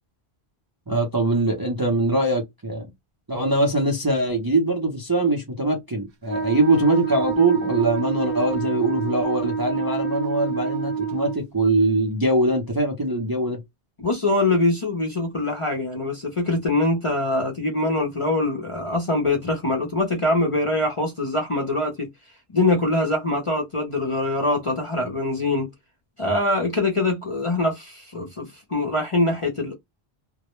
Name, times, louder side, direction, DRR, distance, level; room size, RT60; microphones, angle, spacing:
voice 1, 0.9-2.9 3.3-13.6, right 2 dB, 25° right, 0.5 m, -22 dB
Wind instrument woodwind instrument, 6.3-11.4, right 6 dB, 65° right, 0.8 m, -27 dB
voice 2, 14.0-22.1 22.5-25.7 26.2-29.7, left 2 dB, 35° left, 0.6 m, -23 dB
2.2 x 2.1 x 2.9 m
omnidirectional pair, 1.1 m